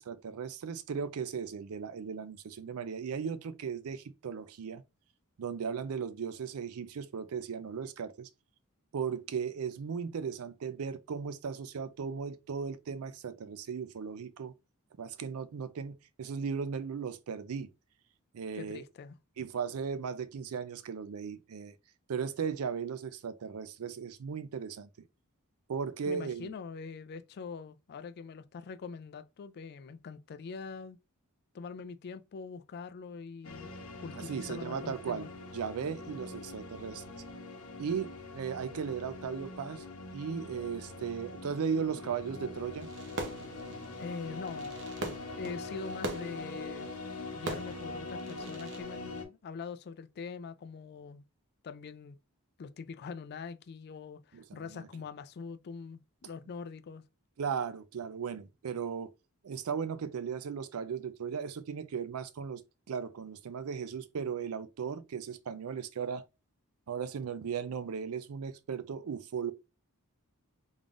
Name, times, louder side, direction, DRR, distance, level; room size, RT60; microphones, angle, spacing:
voice 1, 0.0-4.8 5.4-8.3 8.9-14.5 15.0-17.7 18.3-18.8 19.4-21.7 22.1-24.9 25.7-26.5 34.3-35.3 35.5-37.0 37.8-39.8 40.1-42.9 54.3-54.9 57.4-59.1 59.4-62.6 62.9-66.3 66.9-69.5, right 6 dB, 75° right, 0.4 m, -37 dB
voice 2, 18.5-19.1 26.1-31.0 31.5-33.7 34.0-35.3 44.0-44.7 45.0-46.9 47.3-51.2 51.6-52.2 52.6-57.0, left 5 dB, 50° left, 0.3 m, -43 dB
sound 1, 33.4-49.2, left 3 dB, 85° left, 0.9 m, -43 dB
Fireworks, 42.8-48.8, right 2 dB, 55° right, 0.8 m, -42 dB
3.6 x 3.5 x 2.4 m
head